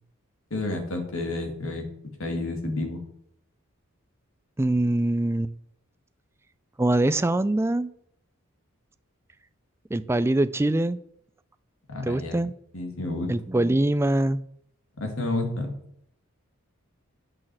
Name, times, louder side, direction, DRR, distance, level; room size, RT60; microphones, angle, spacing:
voice 1, 0.5-1.9 2.2-3.0 11.9-12.4 12.7-13.3 15.0-15.7, left 2 dB, 75° left, 4 dB, 2.3 m, -30 dB
voice 2, 4.6-5.5 6.8-7.9 9.9-11.0 12.0-12.5 13.3-14.4, right 1 dB, 10° right, 14 dB, 0.3 m, -23 dB
8.7 x 6.2 x 7.6 m, 0.71 s
head